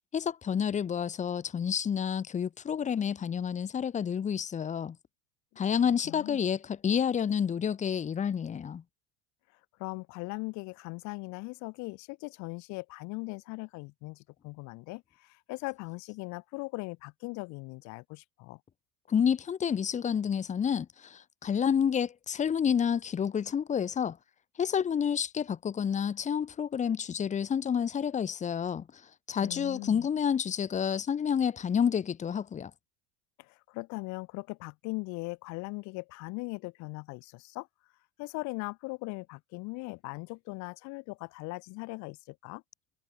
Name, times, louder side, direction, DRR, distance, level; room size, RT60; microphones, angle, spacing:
voice 1, 0.1-5.0 5.6-8.8 19.1-24.2 24.6-29.0 29.3-32.7, left 7 dB, 25° left, 1.1 m, -29 dB
voice 2, 6.0-6.4 9.8-18.6 29.4-30.1 33.4-37.7 38.2-42.6, left 25 dB, 65° left, 2.8 m, -39 dB
supercardioid pair, 115°, 31 cm